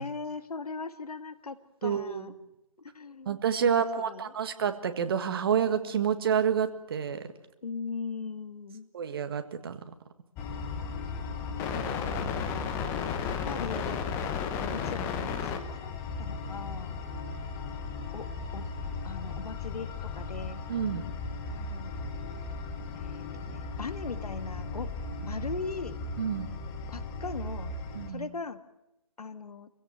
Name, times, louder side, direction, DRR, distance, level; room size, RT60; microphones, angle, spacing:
voice 1, 0.0-2.3 2.8-3.3 3.6-4.3 7.6-8.9 11.7-14.0 14.6-17.0 18.1-18.3 18.5-18.7 19.0-20.6 21.5-21.9 22.9-24.9 25.2-26.0 26.9-27.7 28.1-28.6 29.2-29.7, left 4 dB, 75° left, 11 dB, 1.8 m, -39 dB
voice 2, 1.8-2.3 3.3-7.2 8.9-9.8 20.7-21.0 26.2-26.5 28.0-28.3, right 7 dB, 40° right, 9 dB, 1.7 m, -28 dB
sound 1, 10.4-28.1, left 5 dB, 10° left, 1.1 m, -35 dB
25.0 x 16.5 x 9.2 m, 0.94 s
hypercardioid pair, 160°, 19 cm